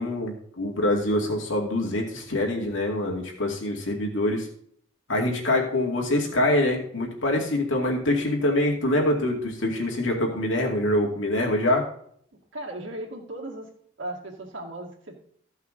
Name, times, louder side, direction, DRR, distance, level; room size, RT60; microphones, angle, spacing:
voice 1, 0.0-4.5 5.1-11.8, left 1 dB, 80° left, 0 dB, 2.3 m, -25 dB
voice 2, 12.5-13.7 14.0-15.2, right 1 dB, 75° right, 0 dB, 2.1 m, -36 dB
14.5 x 5.6 x 3.8 m, 0.64 s
head